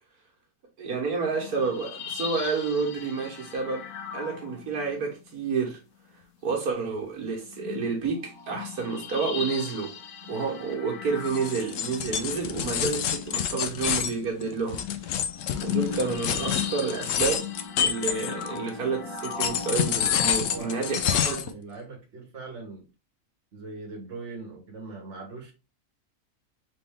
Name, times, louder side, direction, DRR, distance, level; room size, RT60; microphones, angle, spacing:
voice 1, 0.8-3.8 4.1-5.8 6.4-9.9 10.3-14.8 15.6-17.5 17.8-21.4, right 4 dB, 85° right, 1.8 m, -29 dB
sound 1, 1.3-5.2 7.5-20.9, left 7 dB, 90° left, 1.3 m, -38 dB
sound 2, 11.2-18.7 19.2-21.5, left 9 dB, 70° left, 0.8 m, -28 dB
voice 2, 20.5-22.9 23.5-25.5, right 3 dB, 50° right, 1.7 m, -41 dB
4.0 x 3.5 x 3.6 m
omnidirectional pair, 1.6 m